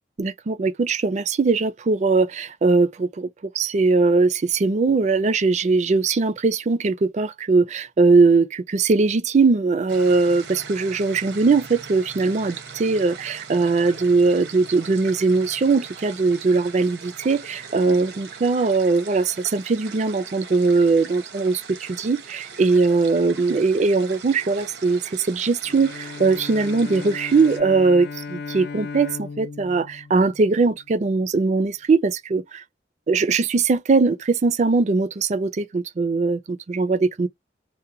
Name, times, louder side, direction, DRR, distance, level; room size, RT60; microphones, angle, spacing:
voice 1, 0.2-3.3 3.5-32.6 33.1-37.3, right 4 dB, 40° right, 0.4 m, -20 dB
sound 1, 9.9-27.6, right 6 dB, 80° right, 0.8 m, -41 dB
Bowed string instrument, 25.6-31.0, left 5 dB, 65° left, 0.4 m, -36 dB
2.7 x 2.1 x 2.5 m
head